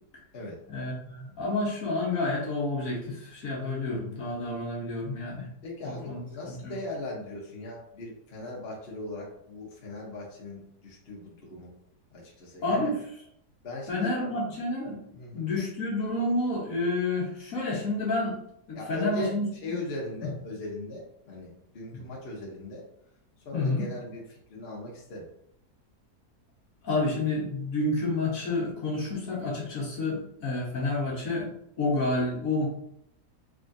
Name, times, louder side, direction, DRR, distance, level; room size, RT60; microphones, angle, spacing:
voice 1, 0.7-5.5 5.8-6.2 6.5-6.7 12.6-12.9 13.9-15.0 15.3-18.3 18.7-19.8 20.2-20.3 23.5-23.9 26.8-31.5 31.8-32.6, left 2 dB, 60° left, -3 dB, 1.5 m, -29 dB
voice 2, 5.6-11.7 12.1-12.9 13.6-14.1 15.1-15.5 18.7-22.8 23.4-25.3, left 1 dB, 45° left, -3 dB, 1.0 m, -39 dB
3.7 x 3.6 x 2.6 m, 0.74 s
omnidirectional pair, 1.7 m